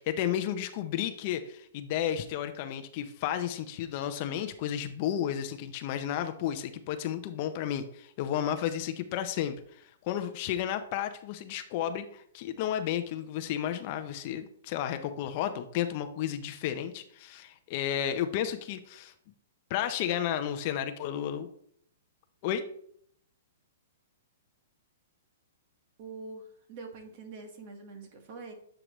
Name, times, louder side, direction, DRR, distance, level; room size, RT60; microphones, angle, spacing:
voice 1, 0.0-19.1 19.7-21.5 22.4-22.6, left 10 dB, 40° left, 8 dB, 0.5 m, -32 dB
voice 2, 26.0-28.5, right 3 dB, 40° right, 4 dB, 1.3 m, -44 dB
7.7 x 4.8 x 3.0 m, 0.65 s
hypercardioid pair, 155°, 0 cm